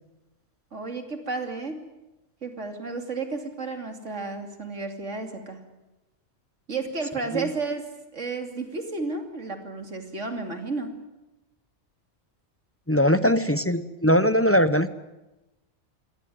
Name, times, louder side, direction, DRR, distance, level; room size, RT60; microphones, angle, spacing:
voice 1, 0.7-1.8 2.4-5.6 6.7-7.9 8.1-10.9, right 3 dB, 70° right, 5 dB, 3.1 m, -32 dB
voice 2, 12.9-14.9, equal, 15° left, 12 dB, 0.8 m, -21 dB
26.0 x 17.5 x 9.4 m, 1.0 s
omnidirectional pair, 1.3 m